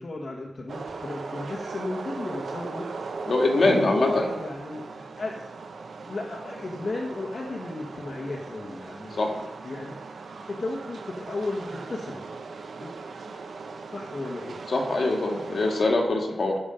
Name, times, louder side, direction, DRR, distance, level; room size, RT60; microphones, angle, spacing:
voice 1, 0.0-2.9 3.6-5.4 6.0-10.0 10.5-12.2 12.8-12.9 13.9-14.6, left 2 dB, 40° left, -2 dB, 1.4 m, -34 dB
sound 1, 0.7-15.8, right 4 dB, 80° right, 1.0 m, -39 dB
voice 2, 3.3-4.3 9.1-9.3 14.7-16.6, left 2 dB, 55° left, 0 dB, 1.9 m, -23 dB
14.5 x 5.1 x 5.7 m, 0.97 s
wide cardioid pair, 145°, 0 cm